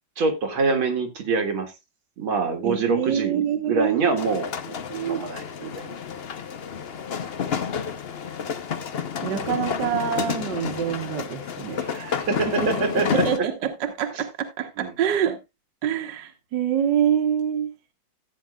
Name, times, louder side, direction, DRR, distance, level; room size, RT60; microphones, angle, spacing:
voice 1, 0.2-1.7 2.2-4.5 5.0-6.0 11.8-13.2 14.8-14.9, right 4 dB, 80° right, 2.4 m, -25 dB
voice 2, 2.6-4.3 4.7-5.2 9.2-12.2 12.5-12.7 13.0-15.4 15.8-17.7, right 9 dB, 60° right, 1.7 m, -26 dB
sound 1, 4.2-13.4, left 7 dB, 70° left, 0.5 m, -30 dB
14.5 x 9.1 x 2.3 m
omnidirectional pair, 2.2 m